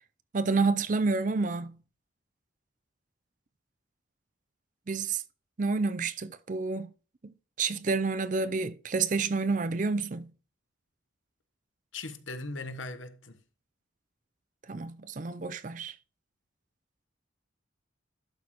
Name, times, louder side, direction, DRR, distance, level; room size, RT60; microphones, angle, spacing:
voice 1, 0.3-1.8 4.9-5.2 5.6-6.9 7.2-7.3 7.6-10.3 14.7-16.0, right 4 dB, 40° right, 0.5 m, -29 dB
voice 2, 11.9-13.4, left 3 dB, 80° left, 1.1 m, -39 dB
11.5 x 6.3 x 3.0 m
head